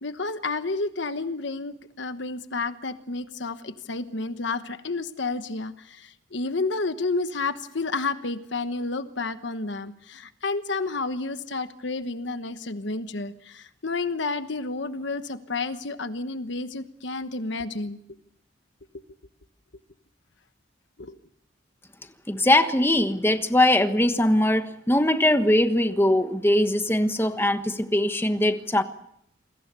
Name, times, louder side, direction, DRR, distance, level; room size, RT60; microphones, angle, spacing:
voice 1, 0.0-18.0 21.0-21.2, left 3 dB, 65° left, 11 dB, 1.2 m, -30 dB
voice 2, 22.3-28.8, left 1 dB, 10° left, 8 dB, 1.3 m, -21 dB
28.5 x 22.0 x 6.9 m, 0.76 s
head